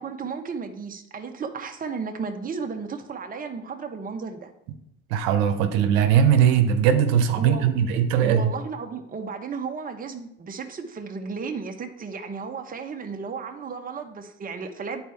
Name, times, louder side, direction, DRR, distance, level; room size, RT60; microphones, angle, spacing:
voice 1, 0.0-4.5 7.4-7.7 8.1-15.0, right 5 dB, 30° right, 5 dB, 1.0 m, -34 dB
voice 2, 5.1-8.5, right 8 dB, 85° right, 7 dB, 0.8 m, -20 dB
9.8 x 4.4 x 3.5 m, 0.79 s
supercardioid pair, 90°, 30 cm